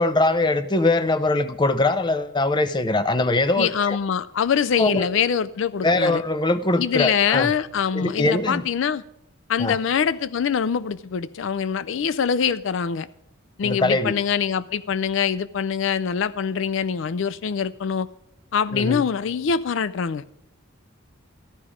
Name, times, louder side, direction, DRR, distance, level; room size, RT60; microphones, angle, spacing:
voice 1, 0.0-4.0 4.8-5.1 5.8-7.5 7.9-8.6 9.6-9.8 13.6-14.1 18.7-19.1, left 2 dB, 20° left, 0.6 m, -22 dB
voice 2, 3.6-6.2 6.8-9.0 9.5-13.1 13.6-18.1 18.5-20.2, left 7 dB, 65° left, 0.4 m, -24 dB
14.0 x 11.0 x 5.0 m
head